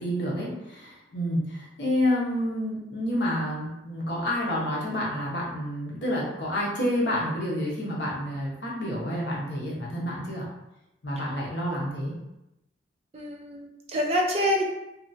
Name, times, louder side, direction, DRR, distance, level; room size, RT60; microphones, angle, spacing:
voice 1, 0.0-10.5 11.0-12.1, left 1 dB, 75° left, -4 dB, 0.9 m, -29 dB
voice 2, 13.1-14.6, equal, 35° right, 0 dB, 0.4 m, -26 dB
2.8 x 2.3 x 2.6 m, 0.92 s
head